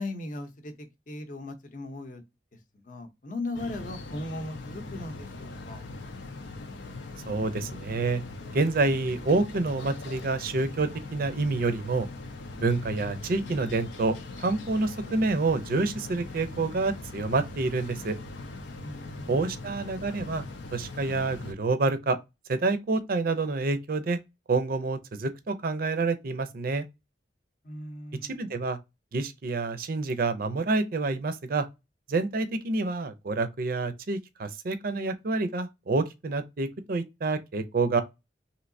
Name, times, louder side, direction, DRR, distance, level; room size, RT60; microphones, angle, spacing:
voice 1, 0.0-2.2 2.8-5.8 18.8-19.5 27.6-28.5, left 2 dB, 45° left, 0.7 m, -38 dB
sound 1, 3.5-21.5, left 2 dB, 85° left, 0.6 m, -41 dB
voice 2, 7.3-8.2 8.5-12.1 12.5-18.2 19.3-20.4 20.7-22.2 22.5-24.2 24.5-26.9 28.2-28.8 29.1-31.7 32.1-38.0, right 3 dB, 55° right, 0.5 m, -28 dB
3.1 x 2.8 x 2.6 m
head